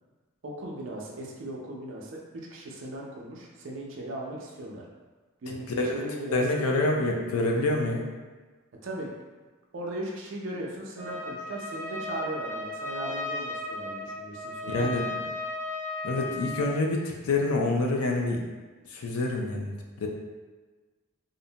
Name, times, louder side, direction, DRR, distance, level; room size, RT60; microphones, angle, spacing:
voice 1, 0.4-4.9 5.4-6.7 8.8-9.1 9.7-14.9, right 1 dB, 60° right, -2 dB, 0.4 m, -38 dB
voice 2, 5.5-6.0 6.3-8.1 14.7-15.1 16.0-18.4 18.9-20.1, left 2 dB, 85° left, 1 dB, 0.4 m, -27 dB
Trumpet, 11.0-16.8, left 2 dB, 10° right, 0.8 m, -35 dB
2.5 x 2.1 x 2.7 m, 1.3 s
head